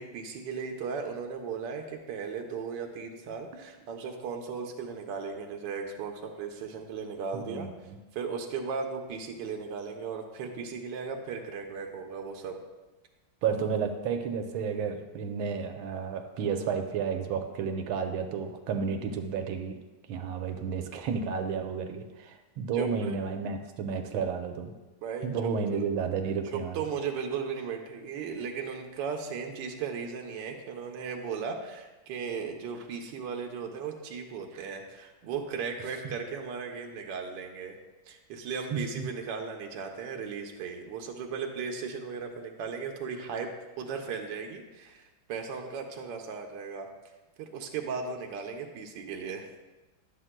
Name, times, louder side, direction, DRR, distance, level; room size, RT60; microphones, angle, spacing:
voice 1, 0.0-7.7 8.1-12.6 22.7-23.2 25.0-25.8 26.5-37.8 38.1-43.5 43.8-46.9 47.4-49.4, right 5 dB, 70° right, 2 dB, 1.3 m, -36 dB
voice 2, 7.3-8.0 13.4-19.8 20.1-24.7 25.2-26.8 34.5-34.7 38.7-39.0, right 6 dB, 85° right, 6 dB, 1.5 m, -32 dB
11.0 x 7.6 x 2.2 m, 1.1 s
omnidirectional pair, 2.2 m